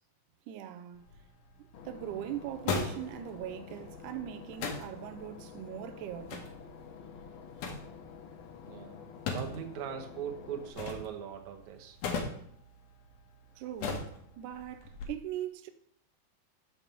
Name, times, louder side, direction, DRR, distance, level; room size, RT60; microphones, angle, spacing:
voice 1, 0.5-1.1 1.9-6.5 13.6-15.7, right 11 dB, 80° right, 1.9 m, -40 dB
sound 1, 0.9-15.0, left 4 dB, 65° left, 2.4 m, -41 dB
Boat Water vehicle / Engine, 1.7-10.7, left 7 dB, 85° left, 2.8 m, -49 dB
voice 2, 8.7-9.1 9.3-12.0, right 8 dB, 65° right, 2.1 m, -40 dB
6.0 x 5.8 x 6.9 m
omnidirectional pair, 4.2 m